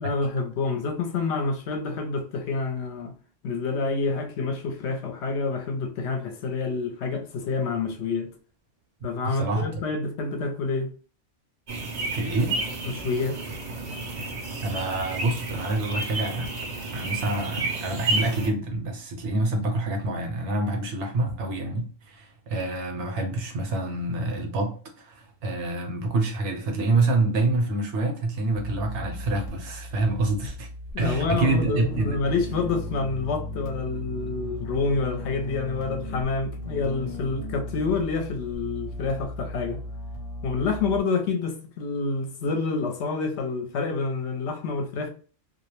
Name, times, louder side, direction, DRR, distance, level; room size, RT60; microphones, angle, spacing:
voice 1, 0.0-3.1 3.4-8.3 9.0-10.9 12.8-13.4 30.9-39.8 40.4-45.1, left 4 dB, 70° left, 0.8 m, -28 dB
voice 2, 9.0-9.8 12.1-12.6 14.2-14.3 14.6-16.5 16.9-30.7 31.0-32.2, right 2 dB, 70° right, 0.9 m, -27 dB
sound 1, 11.7-18.5, right 3 dB, 50° right, 0.5 m, -31 dB
sound 2, 28.5-41.0, left 1 dB, 40° left, 0.6 m, -36 dB
2.3 x 2.0 x 2.9 m
omnidirectional pair, 1.2 m